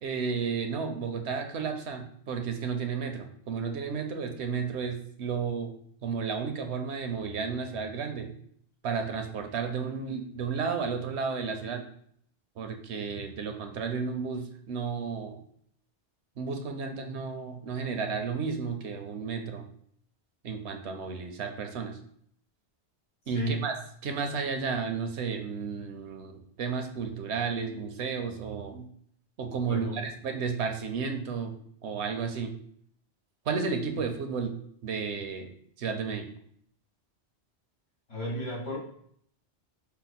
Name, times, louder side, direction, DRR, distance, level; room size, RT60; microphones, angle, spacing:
voice 1, 0.0-5.7 6.0-8.3 8.8-11.8 12.6-15.4 16.4-19.6 20.4-22.0 23.3-23.7 24.0-28.9 29.4-31.5 31.8-32.5 33.5-34.6 34.8-35.5 35.8-36.3, right 5 dB, 75° right, 5 dB, 0.9 m, -32 dB
voice 2, 23.3-23.7 29.7-30.1 38.1-38.8, equal, 85° left, -7 dB, 2.2 m, -33 dB
5.8 x 2.1 x 4.1 m, 0.65 s
omnidirectional pair, 1.1 m